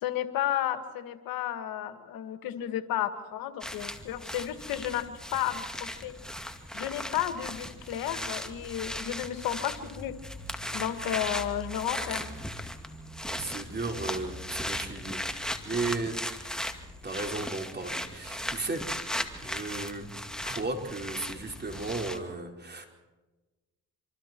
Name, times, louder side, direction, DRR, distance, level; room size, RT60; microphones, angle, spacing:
voice 1, 0.0-6.1 6.7-10.1 10.7-12.4, left 11 dB, 85° left, 9 dB, 1.9 m, -32 dB
sound 1, 3.6-22.2, equal, ahead, 2.4 m, -37 dB
voice 2, 13.3-15.2 15.6-16.2 17.0-18.8 19.4-20.1 20.4-22.9, right 3 dB, 30° right, 2 dB, 5.0 m, -34 dB
27.0 x 25.5 x 4.6 m, 1.2 s
cardioid pair, 75°, 34 cm